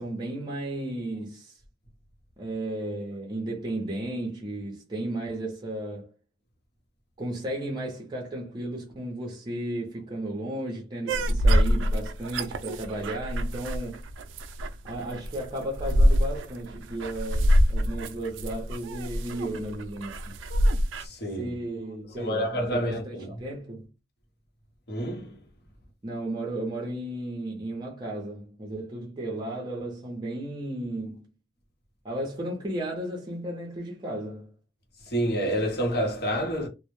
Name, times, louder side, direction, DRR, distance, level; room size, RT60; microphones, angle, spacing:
voice 1, 0.0-1.6 2.4-6.1 7.2-14.0 14.8-20.4 21.4-23.9 26.0-31.3 32.0-34.5, right 1 dB, 25° right, 0.5 m, -34 dB
sound 1, 11.1-21.0, equal, 80° right, 0.3 m, -25 dB
voice 2, 21.0-21.6 22.1-23.5 24.9-25.4 35.0-36.7, equal, 60° left, 0.8 m, -29 dB
2.0 x 2.0 x 3.0 m
head